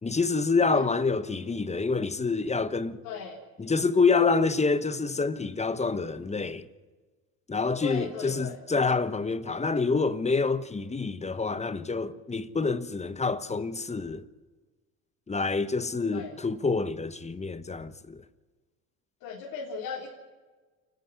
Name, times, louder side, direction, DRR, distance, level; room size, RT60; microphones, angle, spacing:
voice 1, 0.0-3.0 3.6-6.6 7.5-14.2 15.3-18.2, left 4 dB, 20° left, 1.1 m, -27 dB
voice 2, 3.0-3.4 7.8-8.6 16.1-16.4 19.2-20.1, left 6 dB, 70° left, 3.8 m, -37 dB
29.0 x 10.0 x 9.8 m
supercardioid pair, 85°, 36 cm